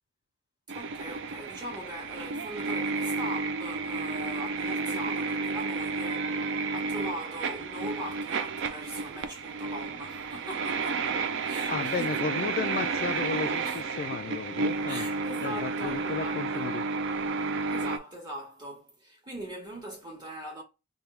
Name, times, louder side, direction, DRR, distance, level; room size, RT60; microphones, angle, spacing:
voice 1, 0.7-11.1 11.4-12.2 13.6-13.8 14.5-16.6 17.7-20.6, equal, 20° right, 1.6 m, -41 dB
sound 1, 0.7-18.0, right 4 dB, 60° right, 0.4 m, -31 dB
voice 2, 11.7-15.1 15.4-16.8, left 5 dB, 45° left, 0.3 m, -34 dB
Wind instrument woodwind instrument, 11.9-17.6, left 1 dB, 80° right, 1.1 m, -47 dB
3.4 x 2.3 x 4.4 m
head